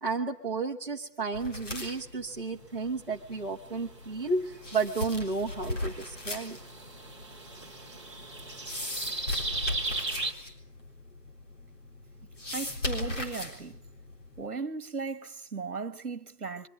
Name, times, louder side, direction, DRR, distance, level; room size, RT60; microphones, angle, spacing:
voice 1, 0.0-6.6, right 3 dB, 35° right, 1.0 m, -32 dB
sound 1, 1.3-14.5, left 1 dB, 50° left, 3.9 m, -39 dB
sound 2, 3.5-10.3, right 3 dB, 20° right, 1.4 m, -38 dB
voice 2, 12.5-13.8 14.4-16.7, right 4 dB, 65° right, 1.5 m, -36 dB
23.0 x 21.5 x 7.7 m
figure-of-eight pair, 170°, 48 cm